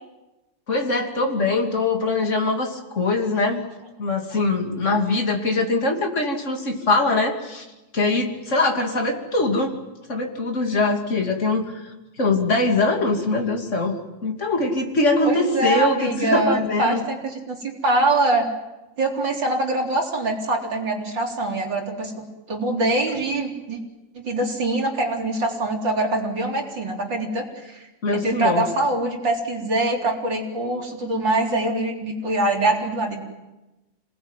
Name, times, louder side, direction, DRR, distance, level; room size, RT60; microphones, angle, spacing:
voice 1, 0.7-3.6 4.0-7.6 7.9-9.7 10.1-17.0 28.0-28.7, left 2 dB, 40° left, 2 dB, 3.2 m, -22 dB
voice 2, 15.2-18.5 19.0-23.8 24.1-27.9 28.1-33.2, right 2 dB, 80° right, 1 dB, 4.5 m, -24 dB
27.5 x 19.5 x 9.2 m, 1.0 s
omnidirectional pair, 2.0 m